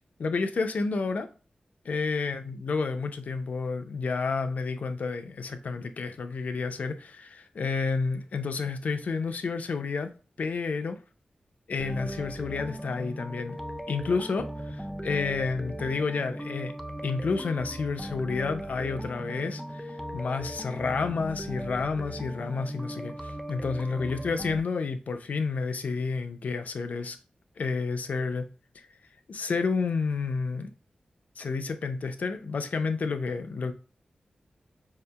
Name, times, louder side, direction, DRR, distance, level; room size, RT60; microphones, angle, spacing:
voice 1, 0.2-1.3 1.8-10.1 10.4-11.0 11.7-13.6 13.9-16.7 17.0-27.2 27.6-28.5 28.8-28.9 29.3-30.7 31.4-33.7, left 4 dB, 70° left, 0.4 m, -30 dB
sound 1, 11.8-24.6, right 1 dB, ahead, 0.3 m, -38 dB
4.7 x 2.8 x 2.2 m
wide cardioid pair, 105°, 3 cm